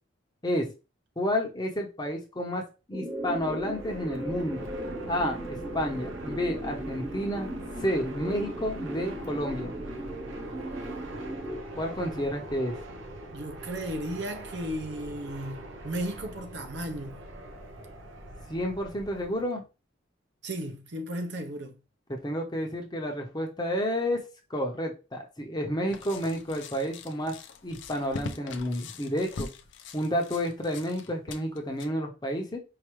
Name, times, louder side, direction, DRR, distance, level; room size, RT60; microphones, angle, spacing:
voice 1, 1.2-2.6 2.9-4.7 5.1-7.5 7.8-9.7 11.8-12.7 18.5-19.6 22.1-24.2 24.5-27.3 27.6-29.5 29.9-32.6, equal, 20° left, 0.8 m, -30 dB
sound 1, 2.9-11.6, right 1 dB, 10° right, 0.6 m, -37 dB
Fixed-wing aircraft airplane, 3.1-19.5, right 1 dB, 85° right, 0.9 m, -42 dB
voice 2, 13.3-17.2 20.4-21.8, right 1 dB, 60° right, 0.7 m, -35 dB
sound 2, 25.9-31.9, left 4 dB, 65° left, 0.5 m, -42 dB
4.8 x 2.6 x 3.1 m
head